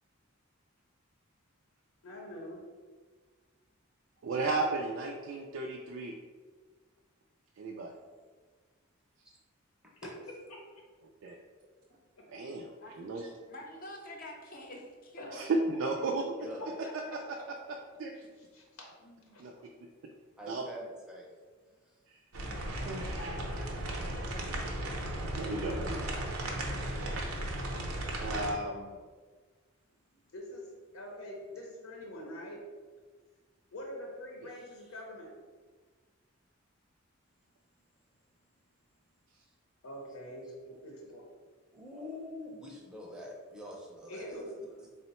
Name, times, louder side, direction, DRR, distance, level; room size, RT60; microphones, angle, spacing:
voice 1, 2.0-2.6 10.0-10.9 15.2-15.5 16.8-16.9 17.4-17.5 18.1-19.5 30.3-32.6 33.7-35.3 39.8-41.2 44.1-44.9, equal, 90° left, -1 dB, 0.7 m, -45 dB
voice 2, 4.2-6.1 7.6-7.9 11.2-11.3 12.3-12.7 13.0-13.3 15.3-16.2 18.0-18.1 19.4-19.7 20.5-20.7 22.1-22.2 22.8-23.1 25.2-26.0 26.9-27.3 28.2-29.0, right 3 dB, 70° right, 0 dB, 0.3 m, -34 dB
voice 3, 12.8-13.1 13.5-15.4 23.1-24.9 25.4-25.9, left 1 dB, 40° left, 1 dB, 0.6 m, -48 dB
voice 4, 16.4-16.7 20.4-21.3 21.8-21.9 39.3-39.5 41.7-44.4, left 1 dB, 5° right, -3 dB, 0.5 m, -45 dB
sound 1, 22.3-28.5, right 1 dB, 90° right, 0.7 m, -36 dB
3.7 x 2.0 x 4.1 m, 1.5 s
head